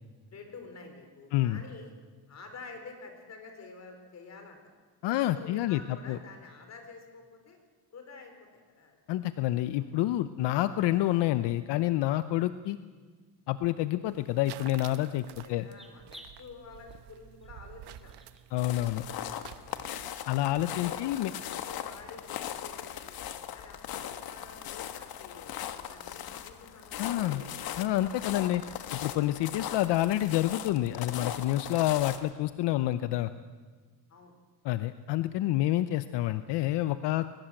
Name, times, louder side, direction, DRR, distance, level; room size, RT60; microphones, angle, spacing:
voice 1, 0.3-1.9 2.3-4.6 5.1-7.6 7.9-9.0 9.8-9.9 15.3-18.2 18.5-19.0 19.6-19.7 20.3-23.2 23.5-25.6 25.9-27.5 34.1-34.4 35.6-35.8, left 4 dB, 40° left, 5 dB, 4.5 m, -49 dB
voice 2, 1.3-1.6 5.0-6.2 9.1-12.8 13.5-15.7 18.5-19.0 20.3-21.3 27.0-27.4 27.8-28.6 28.9-33.3 34.6-37.3, left 14 dB, 80° left, 12 dB, 0.8 m, -28 dB
sound 1, 12.6-12.7 13.5-13.7 14.4-14.5 15.0-15.3 15.6-16.4 16.7-17.0 17.4-17.5 18.0-18.4 18.8-18.9 19.4-19.8, equal, ahead, 2.2 m, -54 dB
sound 2, 14.1-20.1, right 12 dB, 75° right, 1.1 m, -50 dB
sound 3, 18.6-32.3, left 10 dB, 60° left, 1.4 m, -39 dB
22.0 x 20.0 x 7.7 m, 1.5 s
cardioid pair, 140°, 41 cm